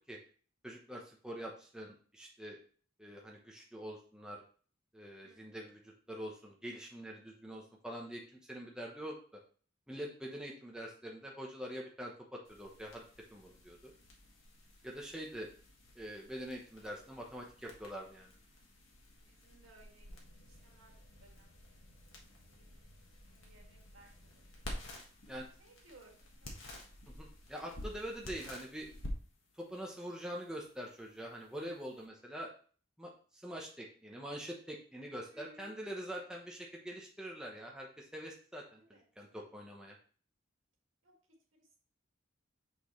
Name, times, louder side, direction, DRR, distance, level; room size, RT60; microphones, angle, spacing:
voice 1, 0.6-1.9 2.1-2.6 3.0-4.4 4.9-9.2 9.9-13.0 13.3-13.9 14.8-15.5 15.9-18.3 25.3-25.5 27.1-28.9 29.5-32.5 33.0-39.9, equal, 5° right, -2 dB, 1.0 m, -45 dB
voice 2, 5.2-5.6 19.2-20.1 20.4-21.5 22.5-22.7 23.3-24.4 25.6-26.8 35.3-35.7 38.8-39.0 41.0-41.1 41.6-41.8, right 1 dB, 75° right, 0 dB, 2.1 m, -61 dB
sound 1, 12.4-32.0, left 1 dB, 80° left, 1.6 m, -51 dB
6.2 x 6.1 x 3.2 m, 0.43 s
head